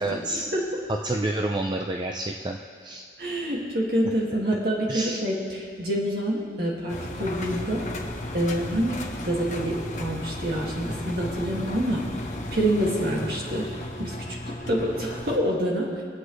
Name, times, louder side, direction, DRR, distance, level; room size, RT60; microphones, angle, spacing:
voice 1, 0.0-0.5 0.9-3.1 4.9-5.2, right 2 dB, 25° right, 2 dB, 0.4 m, -29 dB
voice 2, 0.5-0.8 3.2-7.9 8.3-12.1 12.5-13.7 14.0-14.2 14.5-16.0, right 1 dB, 55° right, -3 dB, 2.1 m, -27 dB
Engine, 6.9-15.4, left 1 dB, 40° left, 0.9 m, -34 dB
23.5 x 8.1 x 3.2 m, 2.1 s
head